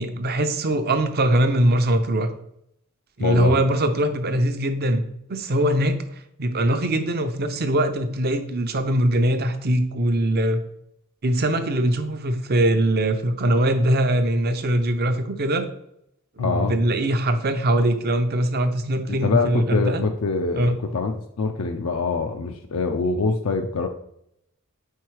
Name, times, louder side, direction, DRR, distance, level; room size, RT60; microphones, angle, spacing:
voice 1, 0.0-2.3 3.2-5.0 5.3-6.0 6.4-10.6 11.2-15.6 16.4-20.0 20.6-20.8, right 1 dB, 45° right, 8 dB, 0.6 m, -22 dB
voice 2, 3.2-3.5 16.4-16.8 19.1-21.1 21.4-23.9, left 4 dB, 70° left, 5 dB, 0.5 m, -24 dB
4.7 x 4.6 x 4.6 m, 0.76 s
head